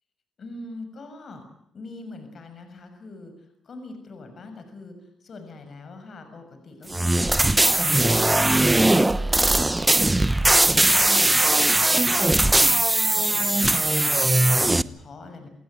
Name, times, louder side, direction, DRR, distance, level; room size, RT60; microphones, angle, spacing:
voice 1, 0.4-1.5 1.7-4.9 5.2-7.9 8.2-15.5, left 3 dB, 50° left, 7 dB, 6.6 m, -42 dB
sound 1, 6.9-14.8, right 2 dB, 15° right, 0.9 m, -19 dB
28.0 x 17.0 x 9.4 m, 0.75 s
cardioid pair, 90°, 0 cm